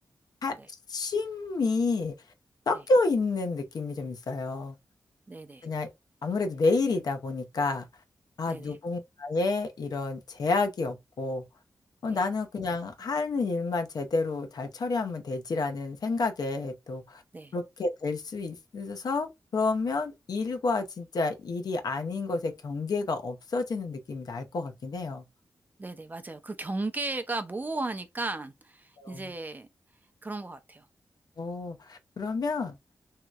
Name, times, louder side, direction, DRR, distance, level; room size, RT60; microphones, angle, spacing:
voice 1, 0.9-2.1 2.7-4.7 5.6-5.9 6.2-7.9 8.4-11.4 12.0-17.2 17.5-25.2 29.0-29.3 31.4-32.8, left 3 dB, 70° left, 0.7 m, -29 dB
voice 2, 5.3-5.7 8.5-8.8 12.1-12.2 17.3-17.5 25.8-29.7 30.2-30.9, right 2 dB, 25° right, 0.5 m, -35 dB
3.1 x 2.8 x 2.3 m
wide cardioid pair, 100°, 7 cm